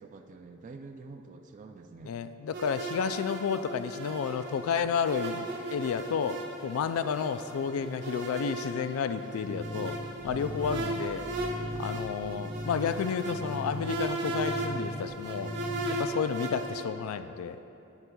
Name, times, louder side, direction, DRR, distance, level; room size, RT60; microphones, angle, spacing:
voice 1, 0.0-2.2 10.2-10.6, right 3 dB, 40° right, 5 dB, 0.3 m, -47 dB
voice 2, 2.0-10.0 10.2-11.2 11.8-15.5 15.9-17.6, left 6 dB, 85° left, 11 dB, 0.3 m, -31 dB
sound 1, 2.5-16.8, right 2 dB, 60° right, 0.8 m, -37 dB
sound 2, 9.4-16.2, left 1 dB, 25° left, 1.2 m, -39 dB
sound 3, 9.7-15.9, equal, 50° left, 0.7 m, -52 dB
8.9 x 7.9 x 2.3 m, 2.9 s
head